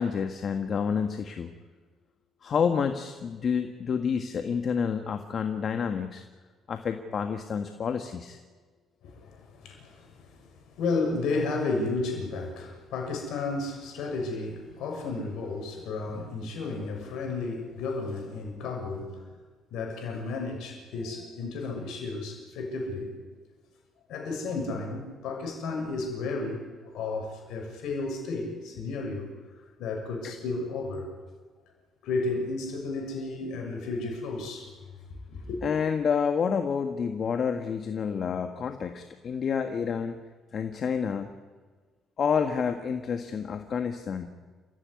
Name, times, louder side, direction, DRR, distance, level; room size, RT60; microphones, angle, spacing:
voice 1, 0.0-1.5 2.4-6.2 6.7-8.4 30.2-30.3 35.6-40.2 40.5-41.3 42.2-44.3, left 6 dB, 55° left, 6 dB, 1.7 m, -29 dB
voice 2, 9.0-19.2 19.7-23.1 24.1-29.3 29.8-31.1 32.0-34.7 35.3-35.6, left 3 dB, 75° left, 3 dB, 6.9 m, -33 dB
29.0 x 15.0 x 9.7 m, 1.5 s
hypercardioid pair, 50°, 0 cm